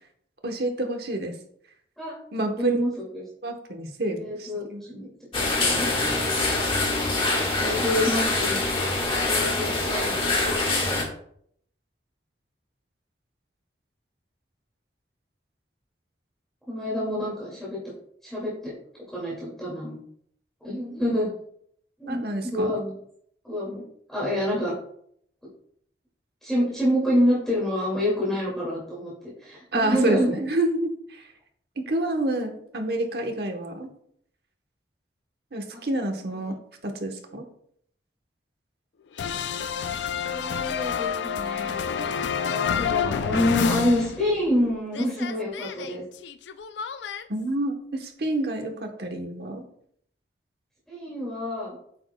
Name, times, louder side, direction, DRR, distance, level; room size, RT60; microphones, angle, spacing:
voice 1, 0.4-1.3 2.3-2.8 3.4-4.8 22.1-22.7 29.7-31.2 31.8-33.9 35.5-36.5 36.8-37.5 47.3-49.6, right 1 dB, 60° right, 4 dB, 1.1 m, -28 dB
voice 2, 2.4-3.2 4.1-6.0 7.6-8.7 9.3-10.5 16.7-17.8 18.2-18.7 19.1-19.9 20.6-21.3 22.0-22.9 23.4-23.8 24.1-24.7 26.4-29.1 29.4-30.3 35.7-35.8 36.4-36.5 40.3-46.0 50.9-51.8, left 1 dB, ahead, -7 dB, 2.3 m, -27 dB
sound 1, 5.3-11.0, left 2 dB, 30° left, 1.5 m, -24 dB
sound 2, 39.2-44.6 44.9-47.2, left 7 dB, 80° left, 0.4 m, -29 dB
8.6 x 7.0 x 2.3 m, 0.67 s
head